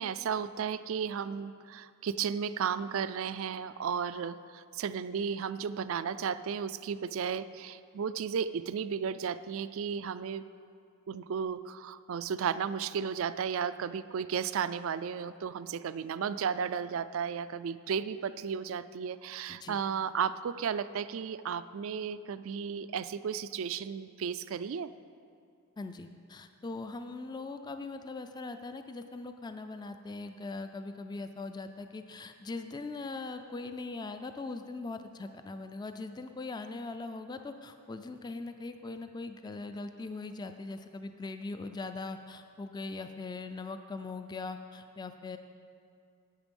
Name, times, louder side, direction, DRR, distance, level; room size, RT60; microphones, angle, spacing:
voice 1, 0.0-10.4 11.1-24.9, right 7 dB, 65° right, 14 dB, 0.3 m, -34 dB
voice 2, 19.5-19.8 25.8-45.4, left 3 dB, 20° left, 8 dB, 0.3 m, -41 dB
11.0 x 8.8 x 5.3 m, 2.4 s
head